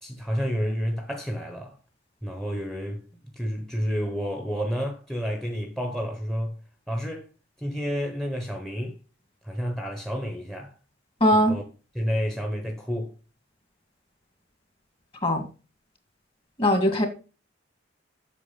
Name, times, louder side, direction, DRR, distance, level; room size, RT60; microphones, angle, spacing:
voice 1, 0.0-1.8 2.2-3.0 3.4-6.6 6.9-7.3 7.6-9.0 9.4-10.7 11.3-11.6 11.9-13.1, equal, ahead, 1.1 m, -30 dB
voice 2, 11.2-11.6 15.2-15.4 16.6-17.1, equal, 30° left, 2.1 m, -20 dB
8.4 x 6.2 x 5.7 m
head